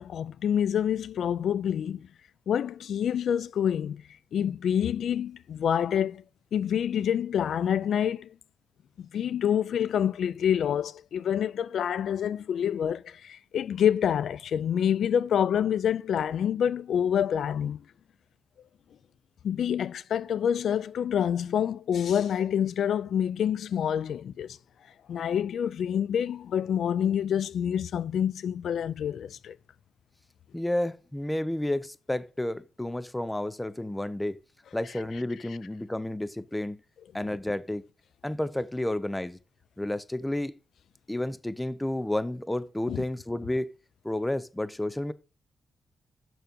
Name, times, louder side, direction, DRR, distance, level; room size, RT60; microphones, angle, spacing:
voice 1, 0.0-2.1 2.5-4.0 4.3-6.2 6.5-8.3 9.0-17.8 19.4-24.6 25.1-29.6 42.9-43.0, left 9 dB, 75° left, 0.3 m, -27 dB
voice 2, 30.5-34.4 34.7-36.8 37.1-37.8 38.2-39.4 39.8-40.6 41.1-43.7 44.0-45.1, left 1 dB, 10° left, 0.6 m, -31 dB
6.9 x 6.1 x 5.2 m
cardioid pair, 90°, 0 cm